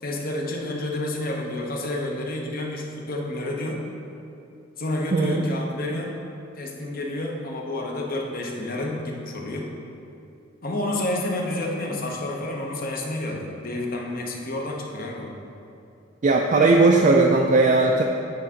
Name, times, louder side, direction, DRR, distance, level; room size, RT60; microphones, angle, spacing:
voice 1, 0.0-3.8 4.8-6.1 6.6-9.7 10.6-15.3, left 1 dB, 50° left, 0 dB, 1.0 m, -29 dB
voice 2, 5.1-5.4 16.2-18.0, right 3 dB, 40° right, 0 dB, 0.4 m, -18 dB
8.7 x 3.7 x 5.7 m, 2.7 s
head